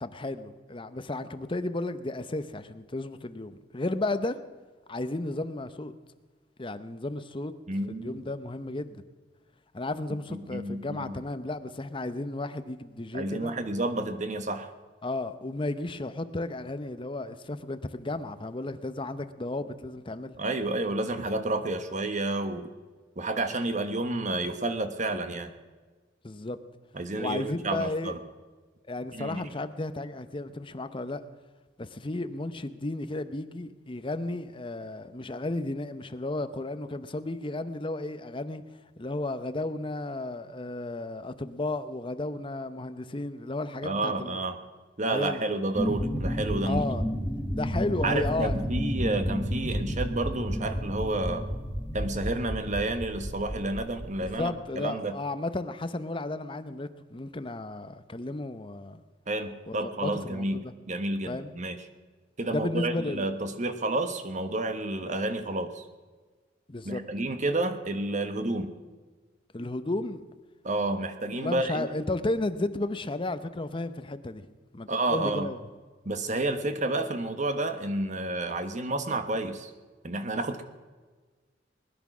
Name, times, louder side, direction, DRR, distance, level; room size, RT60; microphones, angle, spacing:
voice 1, 0.0-4.4 4.9-5.9 6.6-7.5 7.9-9.0 9.7-13.5 15.0-20.4 26.2-26.6 27.2-28.1 28.9-31.2 31.8-38.6 39.0-44.4 45.1-45.4 46.6-47.0 47.5-48.6 54.2-59.0 59.7-60.7 61.3-61.5 62.5-63.3 66.7-67.0 69.5-70.2 71.3-74.5 74.7-75.6, left 2 dB, 30° left, 11 dB, 0.7 m, -33 dB
voice 2, 7.7-8.3 10.3-11.2 13.1-14.7 20.4-22.7 23.2-25.5 26.9-28.2 29.1-29.4 43.8-44.6 45.0-46.8 48.0-51.4 51.9-55.2 59.3-61.8 62.4-65.8 66.8-68.7 70.6-71.9 74.9-75.5 76.0-79.7 80.0-80.6, right 2 dB, 40° right, 9 dB, 1.2 m, -30 dB
sound 1, 45.8-54.3, equal, 10° right, 1.6 m, -31 dB
20.5 x 10.5 x 6.1 m, 1.4 s
head